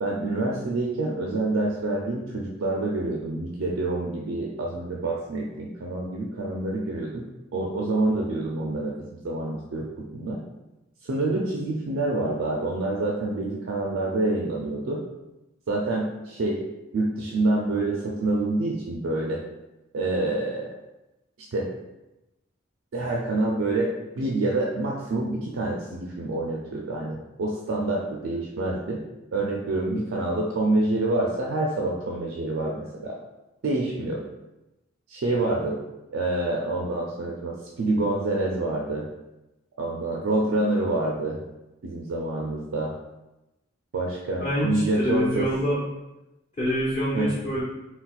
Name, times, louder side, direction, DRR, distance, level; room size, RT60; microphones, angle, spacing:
voice 1, 0.0-7.3 7.5-10.4 11.0-15.0 15.7-16.6 16.9-19.4 19.9-20.7 21.5-21.7 22.9-29.0 29.3-33.2 33.6-34.2 35.1-35.8 36.1-39.0 39.8-41.4 41.8-42.9 43.9-45.4 47.1-47.3, right 2 dB, 75° right, -2 dB, 0.4 m, -27 dB
voice 2, 44.4-45.8 46.6-47.6, equal, 30° left, -10 dB, 0.6 m, -26 dB
4.0 x 2.0 x 2.3 m, 0.96 s
head